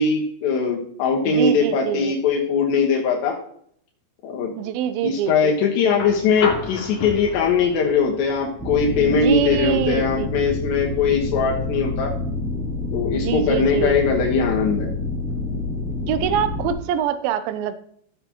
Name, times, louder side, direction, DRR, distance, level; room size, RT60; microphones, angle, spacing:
voice 1, 0.0-3.4 4.2-4.5 5.0-12.1 12.9-14.9, left 5 dB, 80° left, -1 dB, 3.6 m, -20 dB
voice 2, 1.3-2.1 4.6-5.5 9.1-10.3 13.1-14.0 16.1-17.7, right 10 dB, 75° right, 11 dB, 2.3 m, -24 dB
sound 1, 5.9-14.0 15.4-15.5, left 4 dB, 55° left, 1.9 m, -35 dB
sound 2, 8.6-16.7, left 2 dB, ahead, 2.3 m, -27 dB
14.5 x 7.1 x 3.0 m, 0.64 s
omnidirectional pair, 4.9 m